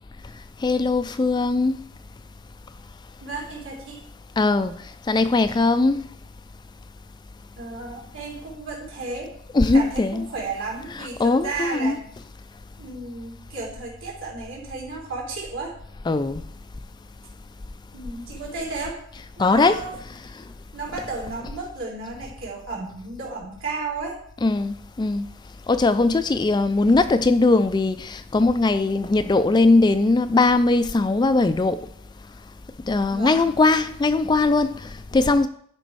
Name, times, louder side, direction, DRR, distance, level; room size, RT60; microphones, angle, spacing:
voice 1, 0.6-1.8 4.4-4.7 5.1-6.1 9.5-10.2 11.2-11.9 16.1-16.4 19.4-19.8 24.4-25.2 25.7-31.8 32.9-35.5, left 3 dB, 20° left, 0.3 m, -20 dB
voice 2, 3.2-4.0 7.6-9.3 9.7-12.0 12.8-15.8 17.9-19.0 19.4-19.9 20.7-24.2 33.1-33.6, right 3 dB, 70° right, 3.8 m, -33 dB
12.0 x 5.2 x 4.6 m
head